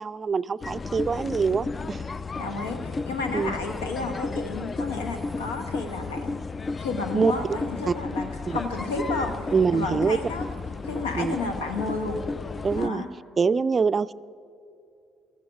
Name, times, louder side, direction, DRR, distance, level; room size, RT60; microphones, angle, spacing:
voice 1, 0.0-2.0 3.3-3.5 7.1-7.6 7.9-8.0 9.5-10.2 11.2-11.3 12.6-13.0 13.4-14.1, right 5 dB, 35° right, 16 dB, 0.3 m, -24 dB
sound 1, 0.6-12.9, left 3 dB, 35° left, 0.4 m, -33 dB
voice 2, 2.4-6.4 6.8-10.4 10.8-12.2 12.8-13.1, left 3 dB, 85° left, 6 dB, 1.2 m, -32 dB
16.0 x 12.5 x 4.8 m, 2.5 s
hypercardioid pair, 50°, 0 cm